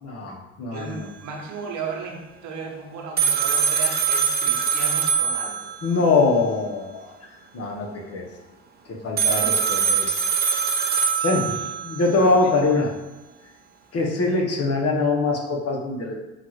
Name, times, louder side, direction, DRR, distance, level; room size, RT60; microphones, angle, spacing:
voice 1, 0.0-1.1 5.8-8.3 8.8-10.1 11.2-11.6 11.8-12.9 13.9-16.2, left 3 dB, 50° left, 0 dB, 1.0 m, -23 dB
voice 2, 0.7-5.7 11.1-11.5 12.2-12.3, right 4 dB, 65° right, 1 dB, 1.0 m, -35 dB
sound 1, 3.2-6.0 9.2-12.2, right 7 dB, 30° right, 0.6 m, -23 dB
5.8 x 2.5 x 3.1 m, 1.1 s
supercardioid pair, 65°, 32 cm